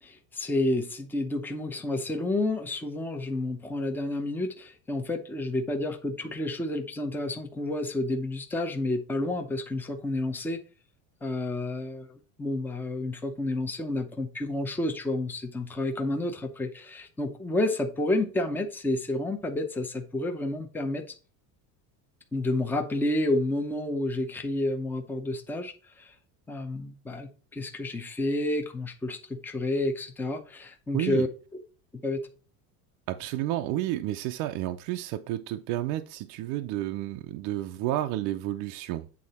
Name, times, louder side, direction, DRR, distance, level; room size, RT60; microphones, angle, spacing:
voice 1, 0.0-10.6 11.2-21.0 22.3-26.1 26.5-31.3 32.0-32.2, left 2 dB, 5° left, 0.6 m, -30 dB
voice 2, 30.9-31.2 33.1-39.1, right 14 dB, 55° right, 0.6 m, -31 dB
8.5 x 3.8 x 4.2 m
cardioid pair, 165°, 42 cm